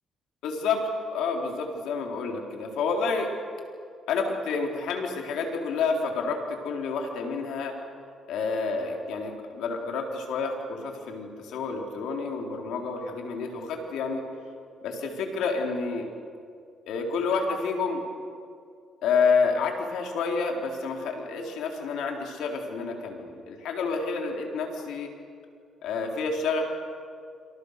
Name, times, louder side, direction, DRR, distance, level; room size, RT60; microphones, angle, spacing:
voice 1, 0.4-3.3 4.1-7.7 8.3-14.2 14.8-16.1 16.9-18.0 19.0-25.1 25.8-26.6, left 4 dB, 85° left, 2 dB, 4.1 m, -29 dB
28.0 x 27.0 x 6.7 m, 2.3 s
cardioid pair, 90°, 0 cm